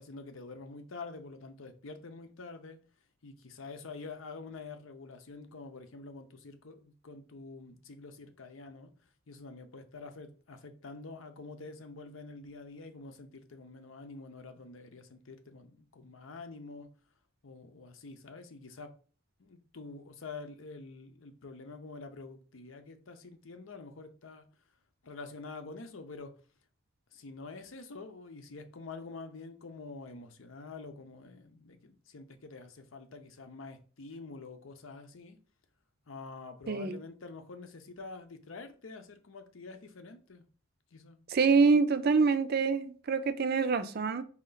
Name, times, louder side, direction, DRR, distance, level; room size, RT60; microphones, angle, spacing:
voice 1, 0.0-2.8 3.2-8.9 9.3-16.9 17.4-18.9 19.4-24.5 25.0-26.3 27.1-35.4 36.1-40.4 40.9-41.2, left 3 dB, 85° left, 0.7 m, -47 dB
voice 2, 36.7-37.0 41.3-44.2, right 4 dB, 50° right, 0.5 m, -26 dB
4.4 x 3.1 x 3.9 m
head